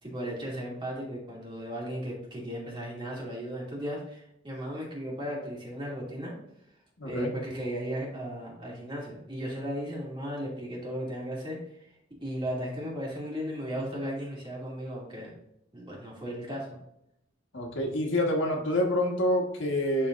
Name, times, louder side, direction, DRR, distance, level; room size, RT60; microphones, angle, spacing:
voice 1, 0.0-6.3 7.0-11.6 12.2-15.3 15.7-16.8, equal, 25° right, -4 dB, 2.4 m, -36 dB
voice 2, 7.0-7.3 17.5-20.1, left 1 dB, 80° left, 0 dB, 1.5 m, -27 dB
11.5 x 4.2 x 2.6 m, 0.78 s
head